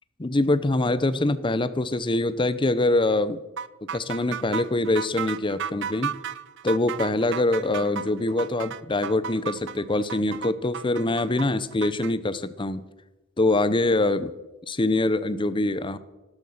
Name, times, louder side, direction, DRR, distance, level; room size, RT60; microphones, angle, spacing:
voice 1, 0.2-3.4 3.9-6.2 6.6-12.8 13.4-14.3 14.7-16.0, left 2 dB, 25° left, 14 dB, 0.7 m, -24 dB
sound 1, 3.6-12.1, right 8 dB, 60° right, 0.5 m, -34 dB
12.5 x 12.5 x 6.5 m, 1.0 s
head